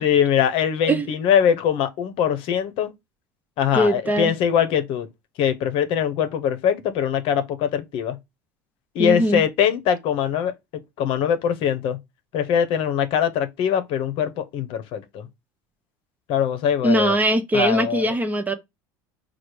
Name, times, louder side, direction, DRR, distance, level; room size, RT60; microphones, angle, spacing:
voice 1, 0.0-2.9 3.6-5.1 5.4-8.2 8.9-10.5 11.0-12.0 12.3-15.3 16.3-17.2 17.5-18.1, left 8 dB, 60° left, 0.8 m, -22 dB
voice 2, 3.7-4.3 9.0-9.4 16.8-18.6, right 1 dB, 15° right, 0.8 m, -21 dB
4.9 x 2.1 x 4.5 m
hypercardioid pair, 85°, 10 cm